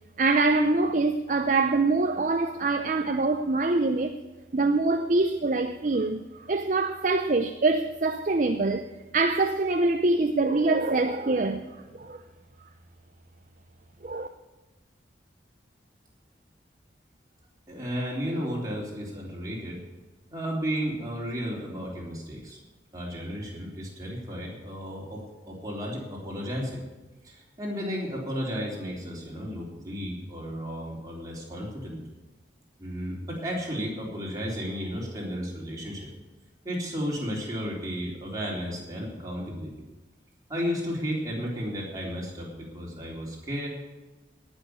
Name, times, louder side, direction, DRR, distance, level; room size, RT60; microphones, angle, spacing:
voice 1, 0.2-4.2 4.5-12.2 14.0-14.3, right 3 dB, 45° right, 0.6 m, -24 dB
voice 2, 17.7-19.8 20.3-22.6 22.9-25.2 25.5-26.8 27.2-32.0 32.8-36.1 36.6-39.9 40.5-43.7, equal, 20° right, 3.7 m, -33 dB
18.0 x 6.4 x 8.2 m
head